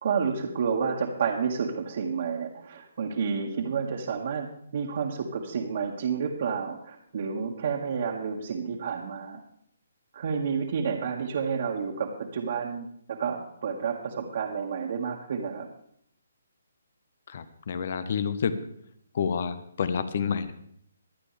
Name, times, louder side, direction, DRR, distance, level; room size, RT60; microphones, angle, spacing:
voice 1, 0.0-9.4 10.1-15.7, right 6 dB, 55° right, -2 dB, 2.0 m, -30 dB
voice 2, 17.3-18.6 19.1-20.5, left 6 dB, 55° left, 13 dB, 1.1 m, -29 dB
24.0 x 9.0 x 3.4 m, 0.69 s
hypercardioid pair, 155°, 0 cm